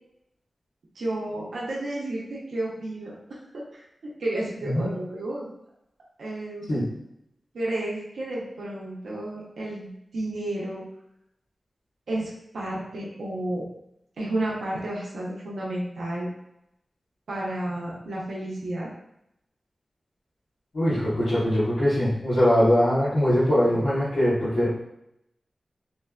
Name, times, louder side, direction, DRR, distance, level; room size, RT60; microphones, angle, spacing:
voice 1, 1.0-3.2 3.5-3.8 4.2-5.5 6.2-6.7 7.5-10.8 12.1-13.7 14.2-16.3 17.3-18.9 23.7-23.8, right 1 dB, 90° right, -5 dB, 0.6 m, -31 dB
voice 2, 20.7-24.7, equal, 90° left, -15 dB, 1.1 m, -22 dB
3.1 x 2.1 x 2.2 m, 0.79 s
cardioid pair, 40°, 0 cm